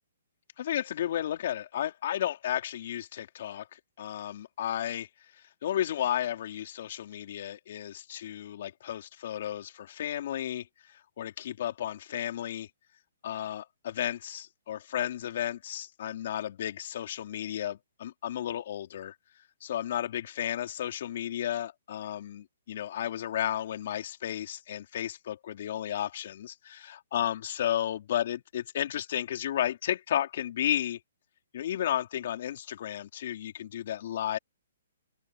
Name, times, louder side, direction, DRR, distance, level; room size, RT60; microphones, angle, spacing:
voice 1, 0.6-5.1 5.6-10.7 11.2-12.7 13.2-19.1 19.6-31.0 31.5-34.4, left 11 dB, 55° left, 3.7 m, -33 dB
hypercardioid pair, 155°, 0 cm